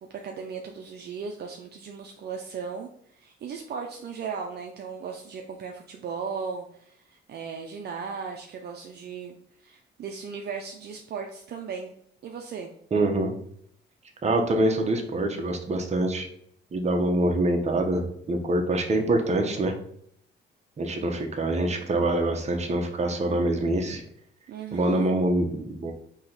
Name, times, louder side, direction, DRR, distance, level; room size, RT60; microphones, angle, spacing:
voice 1, 0.2-9.4 9.6-11.9 12.2-12.7 24.5-25.1, right 6 dB, 55° right, 2 dB, 0.6 m, -37 dB
voice 2, 12.9-13.3 14.2-16.3 16.7-19.7 20.8-24.0 24.7-25.9, right 2 dB, 35° right, 3 dB, 0.9 m, -25 dB
3.9 x 2.9 x 3.9 m, 0.67 s
cardioid pair, 90°, 20 cm